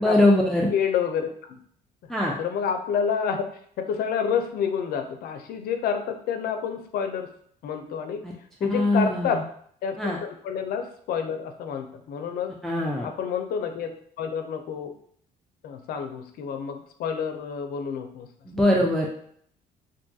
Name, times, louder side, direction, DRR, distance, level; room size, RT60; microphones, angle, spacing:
voice 1, 0.0-0.7 2.1-2.4 8.7-9.4 10.0-10.2 12.6-13.1 18.5-19.1, left 1 dB, ahead, -2 dB, 0.4 m, -22 dB
voice 2, 0.7-1.6 2.4-3.5 3.8-7.3 7.6-8.2 8.6-9.5 9.8-12.5 13.0-14.9 15.6-18.3, left 7 dB, 65° left, 6 dB, 0.4 m, -29 dB
2.6 x 2.3 x 2.6 m, 0.62 s
cardioid pair, 110°, 17 cm